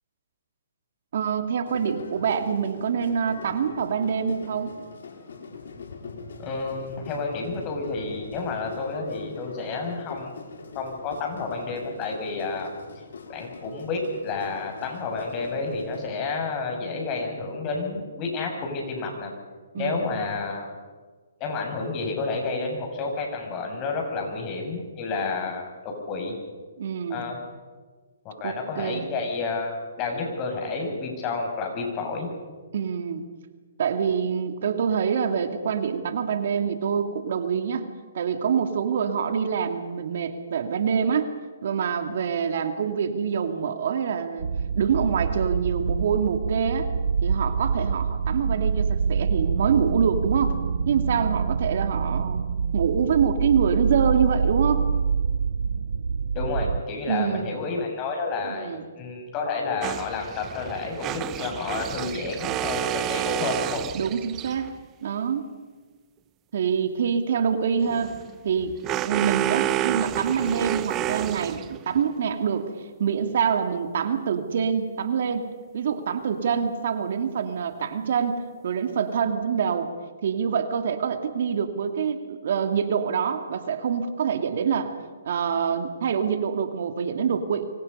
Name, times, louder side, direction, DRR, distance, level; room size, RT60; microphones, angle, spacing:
voice 1, 1.1-4.7 19.7-20.1 26.8-27.2 28.4-29.0 32.7-33.3 33.8-37.9 38.1-41.3 41.6-46.9 47.2-50.6 50.9-52.4 52.7-54.9 57.1-57.6 58.5-58.8 63.9-64.7 65.0-65.5 66.5-68.2 68.4-68.8 69.0-72.7 73.0-79.9 80.2-84.9 85.2-87.7, right 7 dB, 60° right, 7 dB, 2.3 m, -25 dB
sound 1, 1.6-16.1, left 4 dB, 75° left, 4.6 m, -42 dB
voice 2, 6.4-10.3 10.7-12.7 13.3-19.3 19.7-20.7 21.4-26.4 27.1-27.4 28.2-32.3 34.1-34.2 56.3-63.8, left 4 dB, 30° left, 2 dB, 6.7 m, -30 dB
sound 2, 44.4-56.8, right 5 dB, 75° right, 0.7 m, -26 dB
sound 3, 59.8-64.8 67.8-72.0, right 13 dB, 25° right, 0.7 m, -30 dB
27.0 x 25.0 x 5.5 m, 1.4 s
hypercardioid pair, 140°, 0 cm